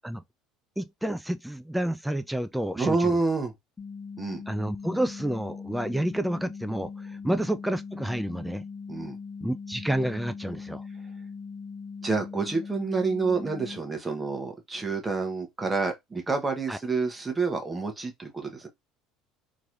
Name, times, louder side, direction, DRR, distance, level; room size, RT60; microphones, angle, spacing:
voice 1, 0.8-3.2 4.5-8.6 9.4-10.8 16.7-16.8, right 1 dB, 5° right, 0.3 m, -30 dB
voice 2, 2.8-3.5 4.2-4.4 7.3-7.4 8.9-9.2 12.0-18.7, right 4 dB, 20° right, 1.0 m, -28 dB
sound 1, 3.8-13.8, left 5 dB, 25° left, 1.0 m, -40 dB
3.0 x 2.9 x 2.5 m
hypercardioid pair, 70°, 0 cm